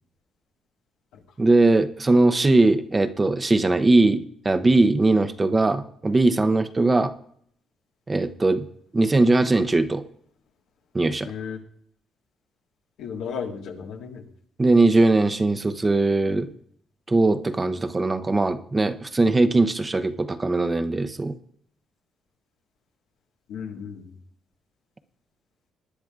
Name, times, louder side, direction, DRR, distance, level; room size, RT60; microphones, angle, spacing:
voice 1, 1.4-7.1 8.1-8.6 8.9-10.0 10.9-11.3 14.6-16.5 17.1-21.4, right 2 dB, 25° right, 9 dB, 0.8 m, -20 dB
voice 2, 11.2-11.6 13.0-14.3 23.5-24.2, left 6 dB, 90° left, 2 dB, 1.6 m, -34 dB
20.0 x 10.0 x 2.4 m, 0.65 s
cardioid pair, 90°, 0 cm